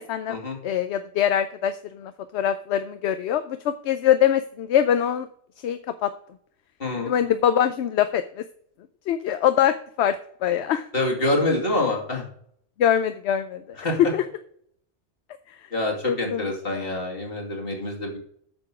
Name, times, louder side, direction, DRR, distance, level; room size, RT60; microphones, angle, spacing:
voice 1, 0.0-0.4 0.6-5.3 5.6-6.1 7.1-8.4 9.1-10.2 10.4-10.8 12.8-13.6 14.1-14.2 16.0-17.0, left 10 dB, 75° left, 11 dB, 0.9 m, -23 dB
voice 2, 6.8-7.1 10.9-12.2 13.8-14.0 15.7-18.2, left 2 dB, 55° left, 0 dB, 2.7 m, -26 dB
7.8 x 6.8 x 5.9 m, 0.65 s
omnidirectional pair, 1.2 m